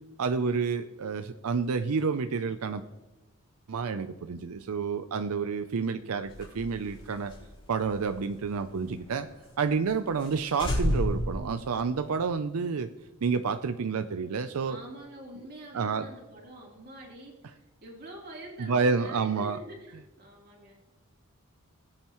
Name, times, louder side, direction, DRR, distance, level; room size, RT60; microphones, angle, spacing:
voice 1, 0.2-2.8 3.7-7.3 7.7-9.3 9.6-12.9 13.2-14.8 15.7-16.1 18.6-19.6, right 5 dB, 80° right, 9 dB, 0.5 m, -29 dB
sound 1, 6.2-9.1 9.4-9.5 9.8-9.9 10.2-10.3 10.6-12.3, equal, 25° left, 4.2 m, -32 dB
voice 2, 14.6-20.7, right 1 dB, 45° right, -2 dB, 3.2 m, -46 dB
20.5 x 8.7 x 3.0 m, 1.1 s
head